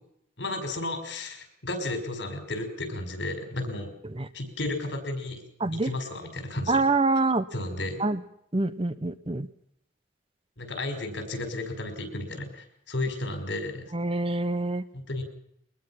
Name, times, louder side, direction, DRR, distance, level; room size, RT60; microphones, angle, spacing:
voice 1, 0.4-3.9 4.3-5.4 5.7-6.8 7.5-7.9 10.6-13.9 14.9-15.2, left 2 dB, 65° left, 7 dB, 5.4 m, -33 dB
voice 2, 6.7-7.4 8.0-8.2 8.5-9.5 13.9-14.8, right 3 dB, 30° right, 13 dB, 0.9 m, -25 dB
23.0 x 20.5 x 5.9 m, 0.73 s
head